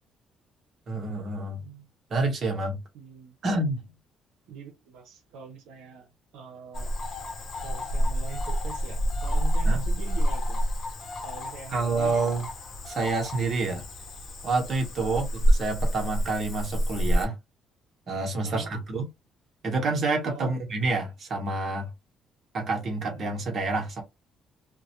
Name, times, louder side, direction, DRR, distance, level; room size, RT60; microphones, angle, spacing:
voice 1, 0.9-1.8 2.1-2.8 3.4-3.8 9.6-9.8 11.7-12.5 12.9-13.8 14.4-15.3 15.6-17.4 18.1-19.0 19.6-21.9 22.5-24.0, right 3 dB, 50° right, 1.0 m, -28 dB
voice 2, 2.9-3.4 4.5-6.9 7.5-10.7 11.2-12.4 15.0-15.3 18.4-18.7 20.2-20.5, right 6 dB, 85° right, 0.7 m, -43 dB
Cricket / Frog, 6.7-17.3, equal, 50° left, 0.8 m, -28 dB
2.2 x 2.1 x 2.8 m
cardioid pair, 90°, 0 cm